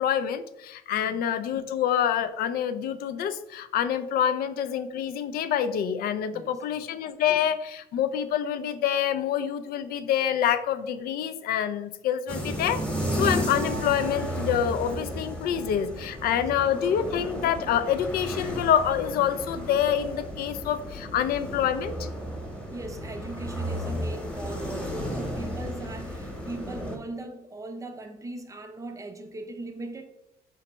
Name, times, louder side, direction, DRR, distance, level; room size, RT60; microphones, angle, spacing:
voice 1, 0.0-12.8 13.1-22.1, left 9 dB, 65° left, 11 dB, 0.4 m, -26 dB
voice 2, 6.3-6.6 22.7-30.0, right 2 dB, 20° right, 6 dB, 0.5 m, -39 dB
sound 1, 12.3-27.0, equal, 5° left, 1.0 m, -33 dB
4.0 x 3.2 x 3.0 m, 0.88 s
cardioid pair, 110°, 17 cm